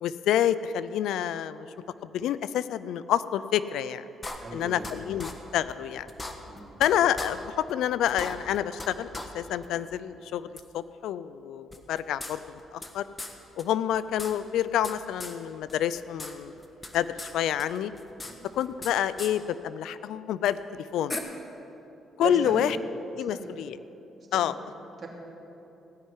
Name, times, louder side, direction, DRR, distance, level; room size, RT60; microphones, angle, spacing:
voice 1, 0.0-1.7 2.0-4.1 4.5-6.1 6.8-9.1 9.3-10.5 10.7-13.1 13.6-16.5 16.9-17.9 18.5-20.6 20.9-21.1 22.2-22.8 23.2-23.8 24.3-24.5, left 10 dB, 85° left, 15 dB, 0.4 m, -28 dB
sound 1, 4.2-4.9 5.2-5.3 5.7-5.8 6.1-6.9 7.2-7.3 7.7-7.8 8.1-8.9 9.1-9.3 9.6-9.7 10.6-10.7 11.7-12.9 13.2-13.3 13.6-13.7 13.9-14.9 15.2-15.4 15.7-16.3 16.6-17.3 17.6-18.9 19.2-19.3 20.5-20.6 21.1-21.2, left 2 dB, 25° left, 1.3 m, -37 dB
voice 2, 4.4-4.9 6.4-6.8 18.2-18.5 22.2-22.7 23.3-23.5 24.3-24.6 25.0-25.1, right 3 dB, 40° right, -1 dB, 2.9 m, -37 dB
16.5 x 5.6 x 9.8 m, 3.0 s
cardioid pair, 90°, 0 cm